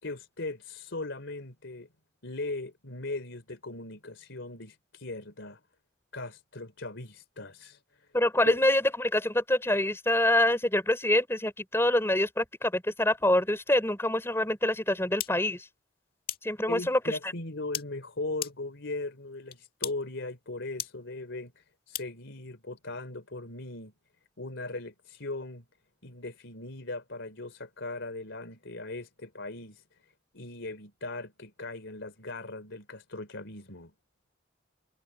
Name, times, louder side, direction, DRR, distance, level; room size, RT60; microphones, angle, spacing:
voice 1, 0.0-1.9 2.2-5.6 6.1-8.1 8.4-8.6 16.7-23.9 24.4-25.6 26.0-29.8 30.3-33.9, left 2 dB, 85° left, 3.1 m, -39 dB
voice 2, 8.1-15.6 16.4-17.2, left 1 dB, 15° left, 4.9 m, -26 dB
sound 1, 15.2-15.3 16.3-16.4 17.7-17.8 18.4-18.5 19.5-19.6 19.8-19.9 20.8-20.9 22.0-22.1, left 11 dB, 50° left, 2.2 m, -32 dB
head